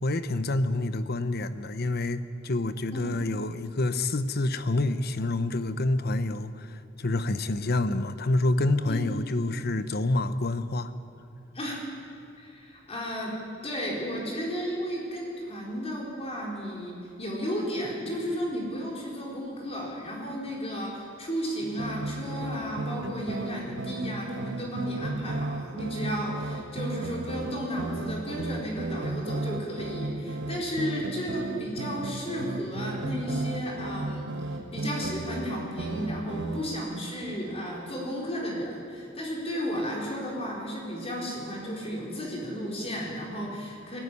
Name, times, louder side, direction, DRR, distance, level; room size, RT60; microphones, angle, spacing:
voice 1, 0.0-10.9, left 2 dB, 55° left, 12 dB, 0.9 m, -27 dB
voice 2, 12.4-13.3 13.6-44.0, equal, 30° left, -3 dB, 4.3 m, -33 dB
sound 1, 21.6-36.8, right 2 dB, 65° right, 1.2 m, -34 dB
19.0 x 15.0 x 9.8 m, 2.7 s
head